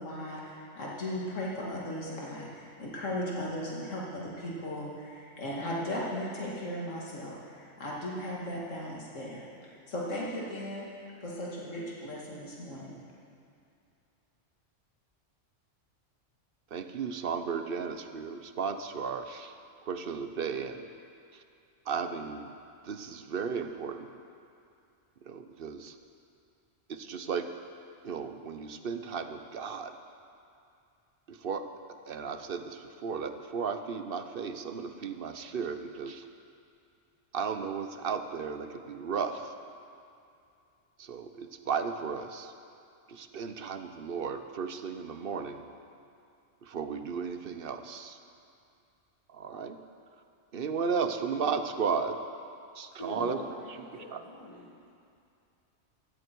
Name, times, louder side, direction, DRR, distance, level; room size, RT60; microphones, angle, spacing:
voice 1, 0.0-13.0, left 1 dB, 85° left, -5 dB, 2.5 m, -37 dB
voice 2, 16.7-19.5 19.9-20.9 21.9-22.5 22.8-24.1 25.3-25.9 26.9-27.5 28.0-29.9 31.3-31.7 32.1-36.2 37.3-39.5 41.0-42.5 43.1-45.6 46.6-48.2 49.3-49.8 50.5-52.2 52.8-53.4 54.1-54.2, right 6 dB, 55° right, 8 dB, 0.9 m, -34 dB
voice 3, 53.0-54.9, left 1 dB, 25° left, -7 dB, 1.6 m, -44 dB
16.0 x 14.0 x 4.6 m, 2.5 s
omnidirectional pair, 1.3 m